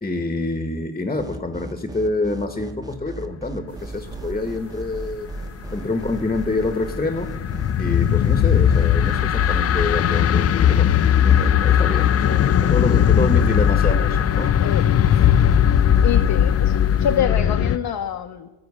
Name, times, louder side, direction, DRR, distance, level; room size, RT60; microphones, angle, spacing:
voice 1, 0.0-5.3 5.7-7.3 7.8-14.6 14.8-15.2, left 2 dB, 15° left, 9 dB, 1.0 m, -27 dB
sound 1, 1.2-16.1, right 1 dB, 10° right, 0.9 m, -36 dB
sound 2, 3.7-17.2, right 4 dB, 80° right, 2.1 m, -42 dB
sound 3, 6.0-17.8, left 9 dB, 35° left, 0.4 m, -18 dB
voice 2, 16.0-18.5, left 9 dB, 60° left, 5 dB, 0.8 m, -26 dB
13.0 x 4.5 x 8.6 m, 1.1 s
cardioid pair, 65°, 43 cm